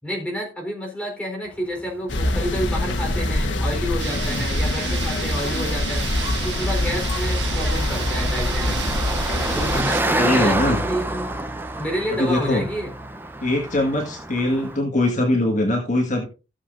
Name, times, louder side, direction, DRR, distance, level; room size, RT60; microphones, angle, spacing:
voice 1, 0.0-6.1 6.4-8.9 9.5-11.3 11.8-12.9, equal, 5° left, -1 dB, 3.9 m, -29 dB
Car passing by, 1.6-14.8, right 1 dB, 10° right, 0.7 m, -30 dB
sound 1, 2.1-9.8, left 1 dB, 85° left, 1.3 m, -24 dB
sound 2, 4.0-10.0, right 9 dB, 70° right, 1.3 m, -33 dB
voice 2, 10.2-10.8 12.2-12.7 13.4-16.3, left 1 dB, 40° left, 0 dB, 1.7 m, -22 dB
17.0 x 7.3 x 2.6 m, 0.31 s
head